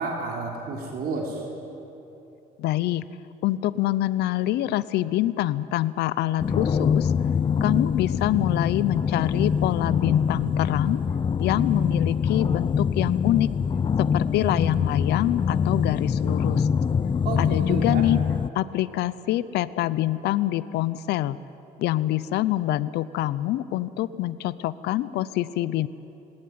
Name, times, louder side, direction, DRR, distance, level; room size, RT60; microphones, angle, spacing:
voice 1, 0.0-1.5 17.2-18.0, right 3 dB, 65° right, 0 dB, 3.9 m, -31 dB
voice 2, 2.6-3.0 3.4-7.1 7.6-11.0 11.4-13.5 14.0-16.7 17.4-18.2 18.5-21.4 21.8-25.9, left 14 dB, 80° left, 17 dB, 0.7 m, -25 dB
sound 1, 6.4-18.5, left 6 dB, 30° left, 0.5 m, -24 dB
20.0 x 17.5 x 9.4 m, 3.0 s
cardioid pair, 110°, 17 cm